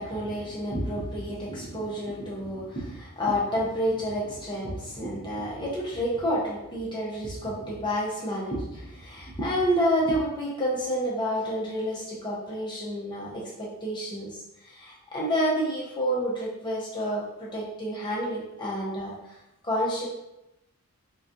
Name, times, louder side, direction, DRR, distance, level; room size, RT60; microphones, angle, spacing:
voice 1, 0.0-14.3 14.6-19.1 19.6-20.1, equal, 20° left, -6 dB, 0.8 m, -29 dB
4.1 x 2.2 x 2.5 m, 0.89 s
head